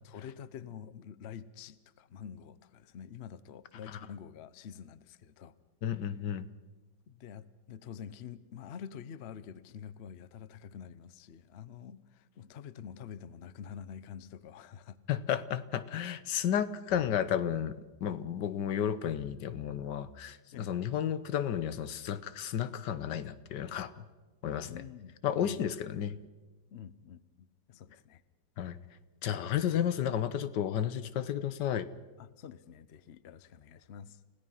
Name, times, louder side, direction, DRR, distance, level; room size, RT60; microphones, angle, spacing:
voice 1, 0.0-5.5 7.1-15.0 20.5-20.7 24.7-25.6 26.7-28.2 32.2-34.2, left 8 dB, 55° left, 16 dB, 0.8 m, -47 dB
voice 2, 5.8-6.5 15.1-24.0 24.4-24.8 25.2-26.2 28.6-28.8 29.2-31.9, left 9 dB, 80° left, 14 dB, 1.5 m, -32 dB
30.0 x 17.0 x 5.6 m, 1.2 s
omnidirectional pair, 1.9 m